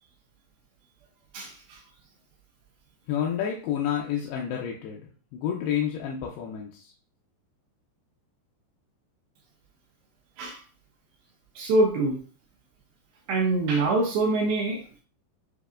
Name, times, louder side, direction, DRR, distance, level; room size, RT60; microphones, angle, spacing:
voice 1, 1.3-1.8 10.4-10.6 11.6-12.2 13.3-14.8, right 2 dB, 80° right, -1 dB, 2.2 m, -24 dB
voice 2, 3.1-5.0 5.3-6.9, left 9 dB, 80° left, -1 dB, 2.3 m, -29 dB
7.9 x 2.7 x 2.4 m, 0.40 s
omnidirectional pair, 5.2 m